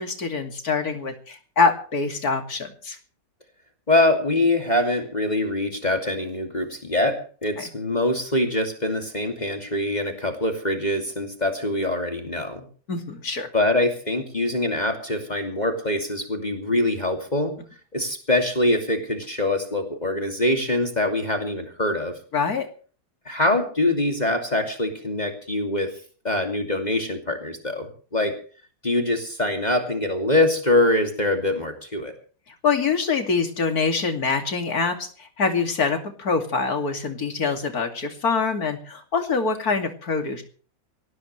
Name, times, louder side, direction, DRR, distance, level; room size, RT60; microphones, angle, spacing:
voice 1, 0.0-3.0 12.9-13.5 22.3-22.7 32.6-40.4, left 4 dB, 55° left, 5 dB, 3.0 m, -25 dB
voice 2, 3.9-12.7 13.5-17.5 17.9-22.1 23.3-25.9 26.2-28.4 28.8-32.1, left 1 dB, 25° left, 3 dB, 2.7 m, -24 dB
23.5 x 17.5 x 3.3 m, 0.42 s
omnidirectional pair, 1.9 m